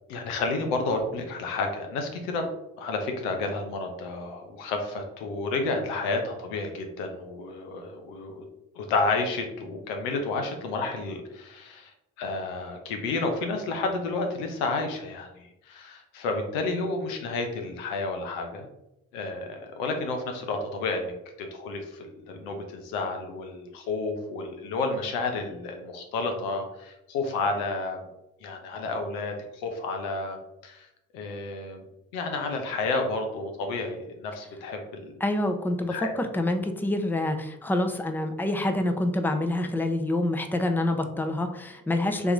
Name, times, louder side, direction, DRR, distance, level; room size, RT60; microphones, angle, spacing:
voice 1, 0.1-2.5 2.8-8.4 8.7-18.7 19.1-21.1 21.4-28.0 28.4-30.9 31.1-31.8 32.1-35.1 35.9-36.1, left 3 dB, 85° left, 4 dB, 0.7 m, -31 dB
voice 2, 35.2-42.3, left 1 dB, 5° left, 6 dB, 0.6 m, -27 dB
3.6 x 3.0 x 3.6 m, 0.88 s
hypercardioid pair, 40°, 39 cm